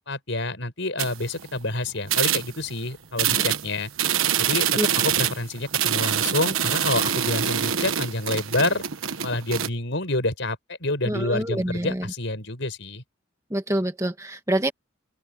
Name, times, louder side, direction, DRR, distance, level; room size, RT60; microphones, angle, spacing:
voice 1, 0.0-3.9 4.4-4.7 4.9-8.8 9.2-13.0, left 2 dB, 65° left, 5.5 m, -28 dB
sound 1, 1.0-1.7 2.0-2.8 3.2-9.7, right 9 dB, 85° right, 1.3 m, -25 dB
voice 2, 11.0-12.1 13.5-14.7, right 1 dB, 15° right, 1.5 m, -26 dB
head